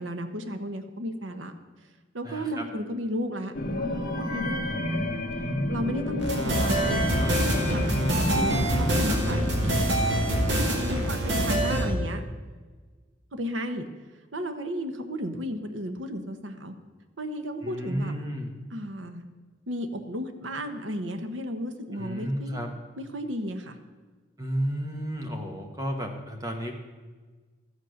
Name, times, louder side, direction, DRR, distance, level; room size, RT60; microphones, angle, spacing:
voice 1, 0.0-1.5 2.1-5.1 5.7-7.3 7.7-9.8 10.7-12.2 13.3-13.9 14.3-16.7 17.2-18.1 18.7-19.2 19.7-22.6 23.0-23.8, equal, 85° right, 8 dB, 1.1 m, -34 dB
voice 2, 2.2-2.6 8.4-8.8 9.1-9.2 17.6-18.6 21.9-22.7 24.4-26.7, equal, 20° right, 3 dB, 1.2 m, -32 dB
sound 1, 3.5-10.7, left 1 dB, 50° left, 1.0 m, -31 dB
sound 2, 6.2-11.9, right 1 dB, 70° right, 2.4 m, -25 dB
13.0 x 8.4 x 6.5 m, 1.4 s
head